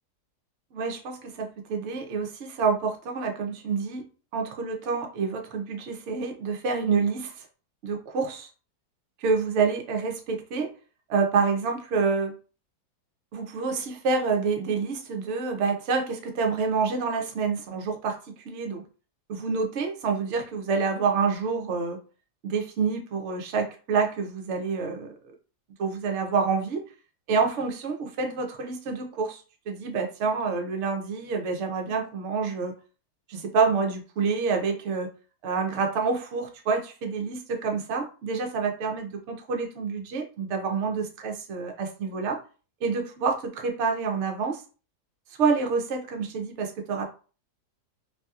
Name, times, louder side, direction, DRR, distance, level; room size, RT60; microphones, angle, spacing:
voice 1, 0.7-4.0 4.3-7.4 7.8-8.5 9.2-10.7 11.1-12.3 13.3-18.8 19.3-22.0 22.4-25.2 25.8-26.8 27.3-29.4 29.7-32.7 33.3-35.1 35.4-42.4 42.8-44.6 45.4-47.1, right 5 dB, 60° right, 3 dB, 0.8 m, -27 dB
2.7 x 2.7 x 2.3 m, 0.36 s
omnidirectional pair, 1.7 m